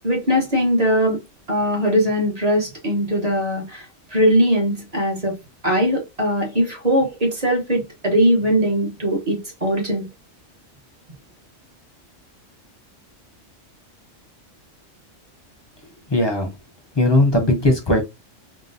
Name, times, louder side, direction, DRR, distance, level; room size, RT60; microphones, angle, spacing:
voice 1, 0.0-1.2 1.5-3.8 4.1-5.4 5.6-10.1, equal, 35° right, 0.9 m, -20 dB
voice 2, 16.1-16.5 17.0-18.0, left 1 dB, 30° left, 0.6 m, -18 dB
3.7 x 2.1 x 2.6 m
omnidirectional pair, 1.3 m